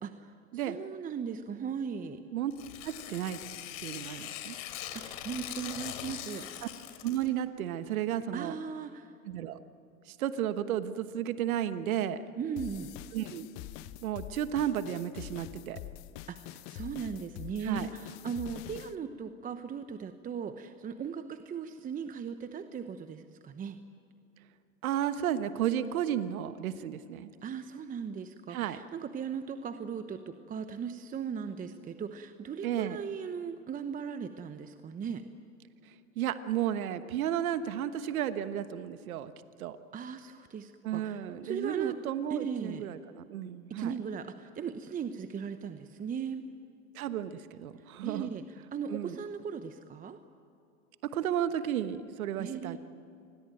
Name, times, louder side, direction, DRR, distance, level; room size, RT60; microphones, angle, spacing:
voice 1, 0.0-2.2 4.9-6.5 8.3-9.2 12.4-12.9 16.3-23.8 27.4-35.2 39.9-42.0 42.3-42.8 43.7-46.5 47.8-50.2 52.4-52.8, right 6 dB, 20° right, 9 dB, 0.9 m, -38 dB
Tearing, 2.5-7.3, left 11 dB, 60° left, 3.1 m, -42 dB
voice 2, 2.8-3.4 3.8-4.6 6.6-6.7 7.0-8.5 9.3-9.6 10.1-12.2 13.1-13.5 14.0-15.8 17.6-17.9 24.8-27.3 28.5-28.8 32.6-33.0 36.2-39.3 39.6-39.8 40.8-43.9 46.9-48.3 48.9-49.2 51.0-52.8, right 10 dB, 75° right, 11 dB, 1.3 m, -33 dB
sound 1, 12.6-18.9, left 15 dB, 45° left, 0.9 m, -45 dB
28.0 x 21.0 x 9.1 m, 2.5 s
hypercardioid pair, 115°, 43 cm